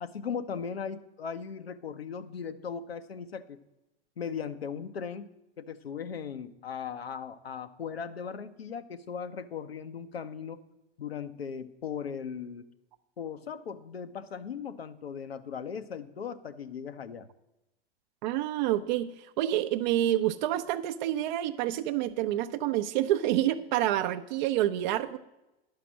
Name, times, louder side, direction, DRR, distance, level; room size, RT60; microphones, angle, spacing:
voice 1, 0.0-3.6 4.2-10.6 11.0-12.7 13.2-17.3, left 7 dB, 80° left, 10 dB, 0.8 m, -38 dB
voice 2, 18.2-25.2, right 13 dB, 50° right, 9 dB, 0.6 m, -28 dB
10.5 x 5.9 x 7.4 m, 0.94 s
figure-of-eight pair, 95°, 30 cm